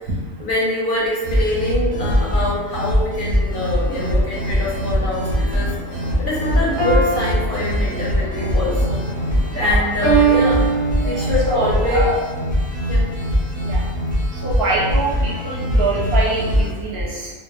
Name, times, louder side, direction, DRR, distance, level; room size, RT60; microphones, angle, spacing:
voice 1, 0.4-10.7 11.0-12.0 12.9-13.1, left 2 dB, 55° left, -6 dB, 0.6 m, -24 dB
sound 1, 1.2-16.7, equal, 15° left, 0.3 m, -21 dB
sound 2, 3.5-9.9, left 1 dB, 90° left, 1.0 m, -35 dB
sound 3, 6.8-8.3 10.0-11.5, right 6 dB, 30° right, 0.9 m, -21 dB
voice 2, 9.5-9.9 11.0-12.2 13.7-13.8 14.4-17.3, right 2 dB, 60° right, -6 dB, 0.8 m, -24 dB
2.3 x 2.0 x 2.9 m, 1.3 s
omnidirectional pair, 1.3 m